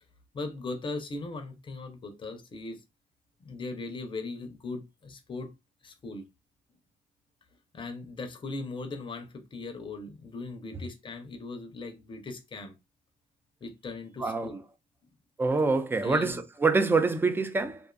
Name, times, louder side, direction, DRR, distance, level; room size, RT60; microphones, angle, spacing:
voice 1, 0.3-2.8 3.4-5.5 5.8-6.2 7.7-12.7 13.6-14.6 16.0-16.4, left 3 dB, 30° left, 0.6 m, -39 dB
voice 2, 15.4-17.8, right 3 dB, 15° right, 0.3 m, -25 dB
2.5 x 2.4 x 2.2 m
cardioid pair, 110°, 17 cm